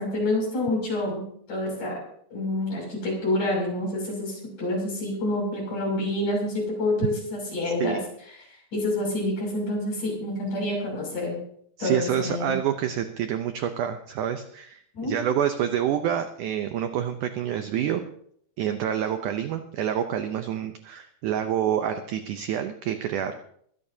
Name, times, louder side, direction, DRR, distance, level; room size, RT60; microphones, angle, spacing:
voice 1, 0.0-2.0 2.3-8.0 8.7-11.4 11.8-12.5 14.9-15.1, left 1 dB, 50° left, -2 dB, 8.0 m, -28 dB
voice 2, 11.8-18.0 18.6-23.3, right 9 dB, 80° right, 7 dB, 1.8 m, -27 dB
22.5 x 15.5 x 2.8 m, 0.67 s
omnidirectional pair, 4.6 m